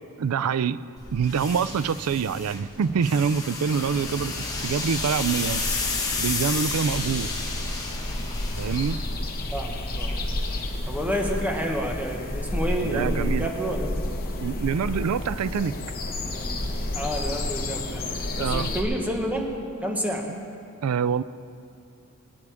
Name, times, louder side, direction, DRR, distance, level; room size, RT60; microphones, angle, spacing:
voice 1, 0.2-0.8 1.1-4.3 4.6-5.6 6.2-7.3 8.6-9.0 12.8-13.5 14.4-15.8 18.4-18.7 20.8-21.2, right 6 dB, 80° right, 17 dB, 0.4 m, -25 dB
sound 1, 1.0-9.6, left 4 dB, 15° left, 1.6 m, -32 dB
sound 2, 3.7-18.8, left 1 dB, 45° left, 1.3 m, -31 dB
voice 2, 9.5-10.2 10.9-14.1 16.9-18.0 18.4-19.4 19.8-20.3, equal, 10° right, 1 dB, 1.3 m, -29 dB
22.5 x 9.5 x 3.5 m, 2.5 s
head